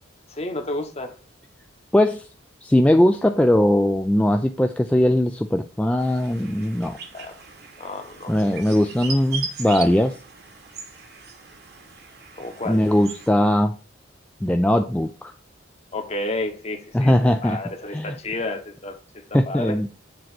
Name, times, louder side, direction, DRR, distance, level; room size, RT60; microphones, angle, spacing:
voice 1, 0.3-1.1 7.1-7.4 7.8-8.3 12.3-12.8 15.9-17.1 17.4-19.8, left 2 dB, 35° left, 1.0 m, -31 dB
voice 2, 1.9-2.3 2.6-7.0 8.3-10.1 12.7-13.8 14.4-15.3 16.9-17.6 17.9-18.2 19.3-19.9, left 1 dB, 5° left, 0.3 m, -20 dB
sound 1, 6.0-13.3, right 5 dB, 55° right, 1.2 m, -38 dB
7.5 x 3.0 x 5.9 m
head